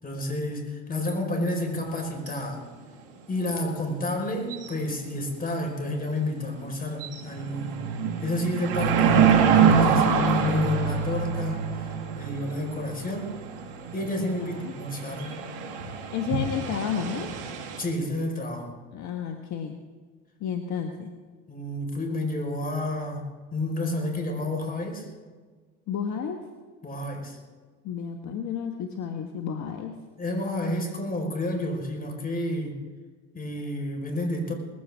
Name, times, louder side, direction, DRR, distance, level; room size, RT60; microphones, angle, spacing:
voice 1, 0.0-2.6 3.3-7.9 8.2-11.7 12.1-13.3 13.9-15.4 17.8-18.7 21.5-23.2 23.5-25.1 26.8-27.4 30.2-32.8 33.3-34.5, left 1 dB, 25° left, 2 dB, 4.7 m, -30 dB
sound 1, 1.9-2.0 2.3-2.4 4.5-4.9 5.2-5.3 5.8-6.1 6.6-6.7 6.9-17.8, right 6 dB, 80° right, 2.6 m, -25 dB
voice 2, 14.4-14.7 16.1-17.3 18.9-19.7 20.4-21.1 25.9-26.4 27.8-30.0, left 7 dB, 55° left, 4 dB, 1.4 m, -31 dB
20.0 x 15.5 x 3.6 m, 1.4 s
hypercardioid pair, 80°, 35 cm